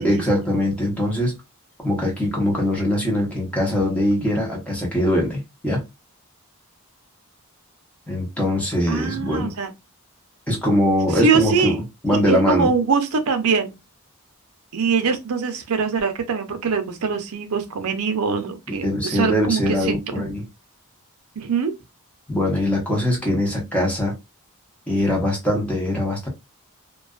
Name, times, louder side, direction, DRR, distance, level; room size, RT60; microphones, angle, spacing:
voice 1, 0.0-1.4 1.8-5.8 8.1-9.5 10.5-11.7 12.0-12.7 18.8-20.4 22.3-24.2 24.9-26.3, left 1 dB, 5° left, 0.9 m, -22 dB
voice 2, 8.9-9.7 11.1-11.7 12.1-13.8 14.7-19.9 21.4-21.7, right 5 dB, 75° right, 0.6 m, -23 dB
2.4 x 2.3 x 2.3 m
head